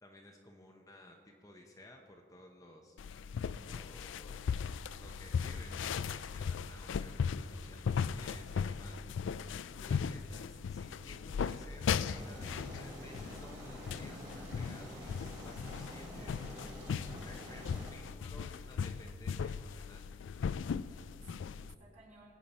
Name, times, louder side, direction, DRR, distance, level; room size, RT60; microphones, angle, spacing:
voice 1, 0.0-3.0 3.6-9.3 9.8-16.3 17.1-20.1 20.9-21.0, left 1 dB, 20° left, 1 dB, 0.9 m, -56 dB
sound 1, 3.0-21.7, left 6 dB, 70° left, 0.3 m, -38 dB
Aircraft, 12.1-17.9, right 1 dB, 20° right, 3.0 m, -48 dB
voice 2, 15.7-16.5 21.0-22.4, right 2 dB, 40° right, -5 dB, 3.8 m, -60 dB
21.0 x 8.4 x 4.2 m, 2.3 s
head